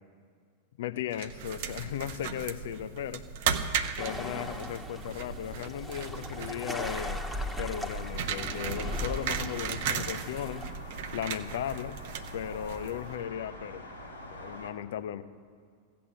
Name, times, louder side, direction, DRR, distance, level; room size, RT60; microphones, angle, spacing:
voice 1, 0.8-3.2 4.0-7.3 7.6-10.7 11.1-12.0 12.3-13.9 14.3-15.2, left 10 dB, 55° left, 14 dB, 0.6 m, -36 dB
sound 1, 1.1-13.2, right 7 dB, 50° right, 0.8 m, -36 dB
Tides on Ile Grande's nautic base, 4.0-10.7, left 1 dB, ahead, 1.3 m, -38 dB
sound 2, 6.3-14.7, left 1 dB, 85° left, 1.7 m, -46 dB
15.5 x 8.5 x 7.4 m, 2.1 s
figure-of-eight pair, 90°, 0 cm